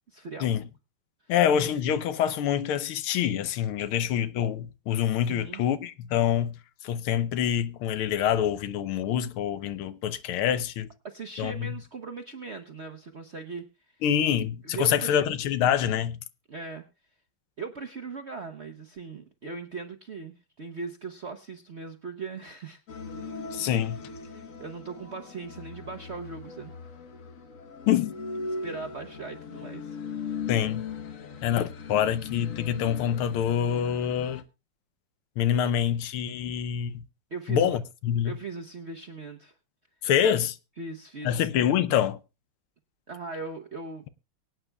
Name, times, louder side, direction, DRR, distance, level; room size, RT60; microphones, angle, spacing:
voice 1, 0.1-0.5 1.2-1.3 5.3-5.6 10.5-10.6 11.0-14.0 14.6-15.2 16.5-16.8 17.6-22.8 24.3-26.7 28.6-30.0 37.3-37.8 38.2-39.5 40.8-41.4 43.1-44.1, right 4 dB, 55° right, 0.7 m, -39 dB
voice 2, 1.3-6.6 6.8-10.9 11.4-11.8 14.0-16.2 23.5-24.0 27.9-28.1 30.5-30.9 31.4-34.4 35.4-37.0 37.5-38.3 40.0-40.6 41.2-42.2, left 9 dB, 80° left, 1.7 m, -26 dB
sound 1, 22.9-34.4, left 5 dB, 45° left, 1.2 m, -39 dB
23.5 x 9.0 x 2.3 m
omnidirectional pair, 2.3 m